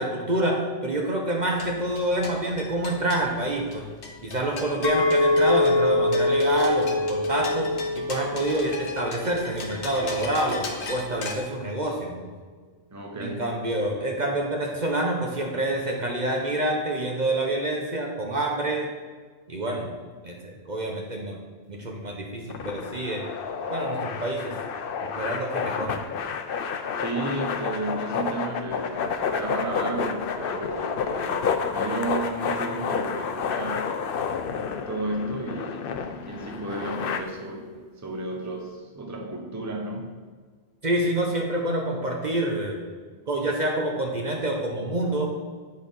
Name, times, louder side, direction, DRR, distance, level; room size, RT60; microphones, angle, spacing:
voice 1, 0.0-3.8 4.2-7.7 7.9-12.3 13.2-18.9 19.5-19.9 20.2-21.4 21.7-23.3 23.7-24.5 25.2-26.0 40.8-42.8 43.3-45.3, right 1 dB, 45° right, 0 dB, 1.0 m, -27 dB
sound 1, 1.4-11.3, left 3 dB, 90° left, 1.3 m, -39 dB
Chink clink, 4.8-10.0, left 2 dB, 35° left, 0.4 m, -24 dB
voice 2, 12.9-13.5 27.0-29.0 29.3-34.0 34.5-40.1, right 2 dB, 15° right, 1 dB, 0.9 m, -33 dB
sound 2, 22.5-37.2, left 6 dB, 65° left, 0.7 m, -30 dB
8.4 x 4.3 x 5.3 m, 1.5 s
omnidirectional pair, 1.1 m